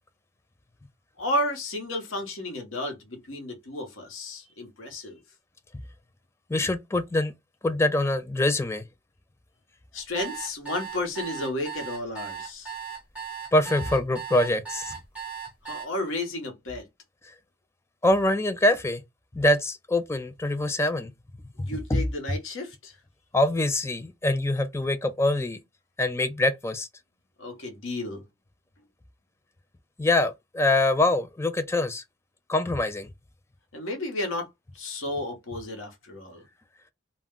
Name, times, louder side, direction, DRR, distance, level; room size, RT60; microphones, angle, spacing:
voice 1, 1.2-5.2 9.9-12.7 15.6-16.9 21.6-23.0 27.4-28.2 33.7-34.5 34.7-36.4, left 1 dB, 85° left, 1.0 m, -32 dB
voice 2, 6.5-7.3 7.6-8.8 13.5-15.0 18.0-19.0 19.3-21.1 21.6-22.1 23.3-25.6 26.0-26.9 30.0-32.0 32.5-33.1, left 1 dB, 15° left, 0.3 m, -24 dB
sound 1, 10.0-15.9, right 7 dB, 5° right, 0.9 m, -37 dB
2.4 x 2.1 x 3.5 m
head